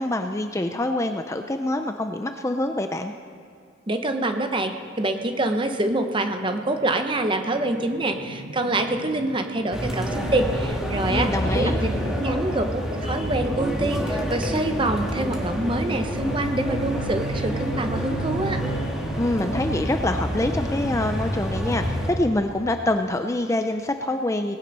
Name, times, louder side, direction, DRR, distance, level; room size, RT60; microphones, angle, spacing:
voice 1, 0.0-3.1 11.1-11.8 19.2-24.6, left 1 dB, 15° left, 6 dB, 0.4 m, -25 dB
voice 2, 3.9-11.9 12.2-18.6, right 2 dB, 25° right, 6 dB, 0.9 m, -26 dB
sound 1, 4.8-12.2, right 1 dB, 80° right, 1.4 m, -40 dB
sound 2, 9.7-22.1, equal, 5° right, 1.8 m, -28 dB
Bowed string instrument, 15.9-20.1, right 4 dB, 70° left, 2.4 m, -34 dB
19.0 x 9.7 x 5.4 m, 2.5 s
head